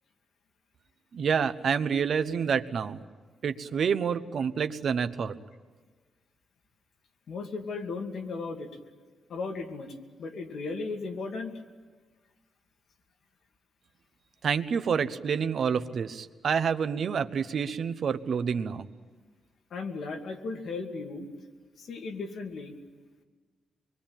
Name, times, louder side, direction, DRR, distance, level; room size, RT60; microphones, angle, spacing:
voice 1, 1.1-3.0 3.4-5.3 14.4-18.9, right 6 dB, 50° right, 10 dB, 1.0 m, -28 dB
voice 2, 7.3-8.7 9.3-11.5 19.7-21.3 21.8-22.8, left 4 dB, 55° left, 2 dB, 2.6 m, -36 dB
25.0 x 23.0 x 9.0 m, 1.4 s
wide cardioid pair, 165°, 0 cm